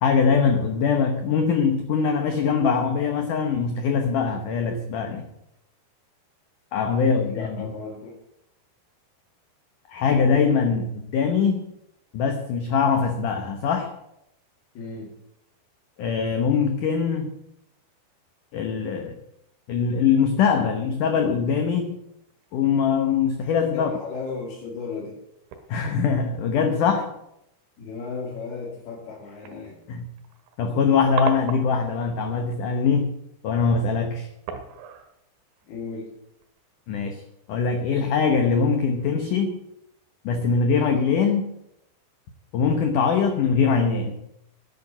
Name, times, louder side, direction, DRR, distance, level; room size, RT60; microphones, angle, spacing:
voice 1, 0.0-5.3 6.7-7.7 9.9-11.6 12.1-13.9 16.0-17.3 18.5-19.2 19.7-21.9 22.5-23.9 25.7-27.1 29.9-30.1 30.6-33.1 33.4-34.3 36.9-37.2 37.5-39.6 40.2-41.5 42.5-44.1, left 5 dB, 80° left, 6 dB, 1.8 m, -22 dB
voice 2, 7.0-8.2 14.8-15.1 23.7-25.2 27.8-29.8 35.7-36.1, left 4 dB, 60° left, -5 dB, 4.2 m, -35 dB
sound 1, 19.7-20.0 22.3-23.4 23.8-23.9 24.5-24.6 25.4-26.1 26.5-26.8 27.8-28.0 28.4-28.5 29.1-29.2 29.4-32.0 32.4-32.7 33.9-34.1 34.5-36.6 37.1-37.4 37.9-38.0, right 7 dB, 85° right, 3.7 m, -37 dB
11.0 x 8.5 x 9.2 m, 0.82 s
omnidirectional pair, 5.3 m